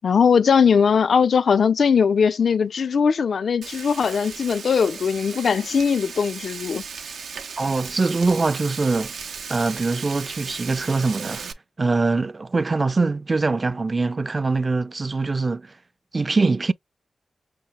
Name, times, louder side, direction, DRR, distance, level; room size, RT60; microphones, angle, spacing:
voice 1, 0.0-6.8, left 6 dB, 75° left, 0.3 m, -20 dB
Frying (food), 3.6-11.5, right 6 dB, 90° right, 0.6 m, -36 dB
voice 2, 7.6-9.1 9.5-11.4 11.8-15.7 16.1-16.7, right 3 dB, 45° right, 0.4 m, -23 dB
5.8 x 2.4 x 3.2 m
cardioid pair, 45°, 0 cm